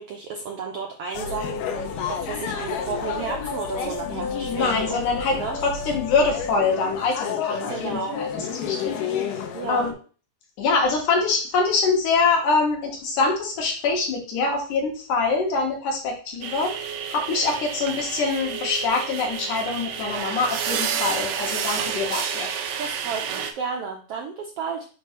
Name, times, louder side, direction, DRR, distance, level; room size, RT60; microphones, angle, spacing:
voice 1, 0.0-5.0 5.3-5.6 7.7-8.2 9.5-9.9 22.8-24.9, right 5 dB, 75° right, 1 dB, 1.4 m, -32 dB
sound 1, 1.1-9.9, left 6 dB, 90° left, 2.5 m, -30 dB
voice 2, 4.5-5.4 5.6-8.9 9.7-9.9 10.6-22.5, left 4 dB, 70° left, 1 dB, 2.9 m, -24 dB
sound 2, 16.4-23.5, right 7 dB, 90° right, 2.4 m, -30 dB
6.8 x 2.7 x 5.7 m, 0.39 s
omnidirectional pair, 3.7 m